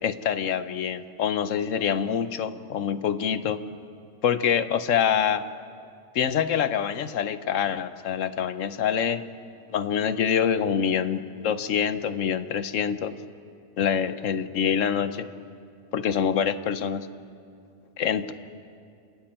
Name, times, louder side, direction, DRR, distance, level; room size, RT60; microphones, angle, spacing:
voice 1, 0.0-3.6 4.2-5.4 6.1-9.2 9.7-13.1 13.8-15.3 15.9-17.1 18.0-18.3, left 8 dB, 80° left, 12 dB, 1.2 m, -25 dB
28.5 x 13.0 x 8.9 m, 2.4 s
omnidirectional pair, 1.3 m